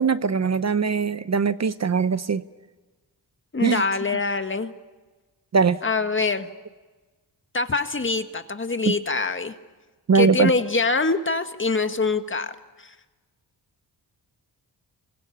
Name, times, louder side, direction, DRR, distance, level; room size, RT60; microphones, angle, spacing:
voice 1, 0.0-2.4 3.6-3.8 5.5-5.8 8.9-9.0 10.1-10.5, right 5 dB, 40° right, 14 dB, 0.8 m, -21 dB
voice 2, 3.5-4.7 5.8-6.5 7.5-9.5 10.1-12.5 12.8-12.9, left 3 dB, 30° left, 8 dB, 1.8 m, -24 dB
26.5 x 21.5 x 8.7 m, 1.3 s
cardioid pair, 80°, 40 cm